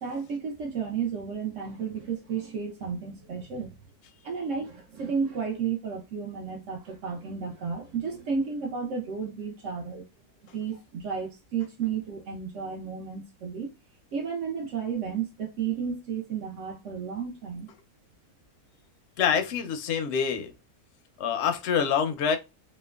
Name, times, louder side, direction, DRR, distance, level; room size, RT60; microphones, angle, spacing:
voice 1, 0.0-3.8 4.2-10.1 10.5-13.7 14.1-17.7, right 6 dB, 65° right, 0.8 m, -32 dB
voice 2, 19.2-20.5 21.2-22.4, left 7 dB, 65° left, 0.7 m, -26 dB
2.8 x 2.2 x 2.2 m
omnidirectional pair, 1.6 m